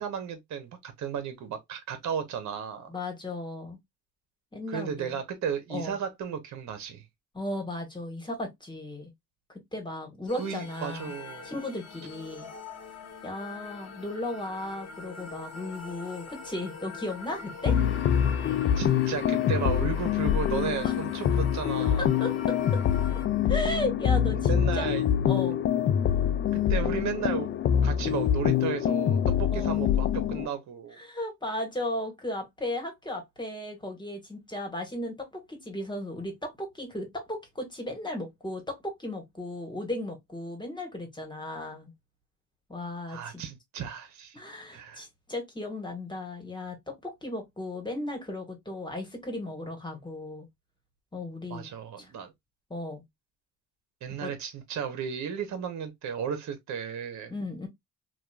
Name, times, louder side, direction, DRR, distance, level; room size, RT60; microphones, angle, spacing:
voice 1, 0.0-2.9 4.7-7.0 10.4-11.5 18.7-22.0 24.4-25.0 26.5-27.5 27.8-31.0 43.1-44.4 44.7-45.0 51.5-52.3 54.0-57.3, right 7 dB, 70° right, 1.0 m, -34 dB
voice 2, 2.9-3.8 4.5-5.2 5.7-5.9 7.3-9.1 9.7-11.1 11.4-12.5 13.2-17.8 20.8-20.9 22.0-22.5 23.5-24.9 25.2-25.6 26.7-26.9 29.5-29.7 31.0-41.9 42.7-43.4 44.3-50.4 51.1-51.6 52.0-52.1 52.7-53.0 54.2-54.3 57.3-57.7, left 1 dB, 15° left, 1.4 m, -35 dB
sound 1, 10.3-23.3, left 5 dB, 55° left, 1.0 m, -44 dB
sound 2, 17.7-30.5, left 9 dB, 40° left, 0.4 m, -25 dB
2.9 x 2.4 x 2.3 m
cardioid pair, 90°, 30 cm